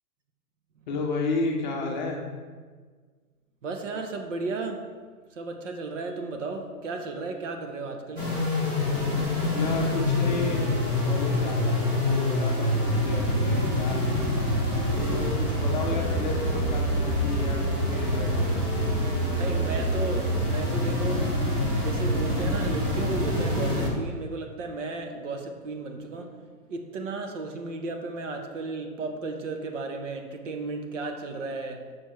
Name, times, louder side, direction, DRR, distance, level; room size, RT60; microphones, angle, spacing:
voice 1, 0.9-2.2 9.5-10.7 11.0-14.3 14.9-17.6 17.9-19.4, left 3 dB, 30° left, 0 dB, 0.8 m, -32 dB
voice 2, 3.6-4.9 5.3-8.3 15.7-15.9 19.3-21.3 21.8-26.4 26.7-31.8, right 3 dB, 55° right, 5 dB, 0.9 m, -34 dB
sound 1, 8.2-23.9, left 1 dB, 15° right, 0.7 m, -26 dB
6.6 x 6.1 x 3.1 m, 1.5 s
hypercardioid pair, 160°, 46 cm